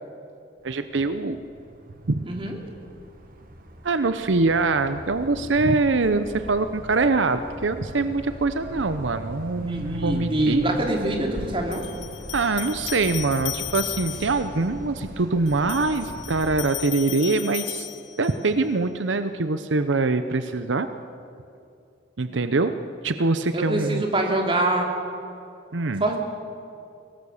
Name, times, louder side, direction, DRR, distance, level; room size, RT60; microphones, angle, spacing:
sound 1, 0.6-16.6, equal, 50° right, 1.7 m, -39 dB
voice 1, 0.6-1.4 2.1-2.4 3.8-10.7 12.3-17.9 18.2-20.9 22.2-22.7 23.0-24.0 25.7-26.0, right 3 dB, 80° right, 10 dB, 0.8 m, -24 dB
voice 2, 2.3-2.6 9.6-11.9 23.5-24.9 26.0-26.2, right 1 dB, 30° right, 2 dB, 2.8 m, -25 dB
sound 2, 11.7-14.5 15.5-18.5, left 15 dB, 75° left, 0.9 m, -35 dB
23.5 x 18.0 x 7.1 m, 2.5 s
head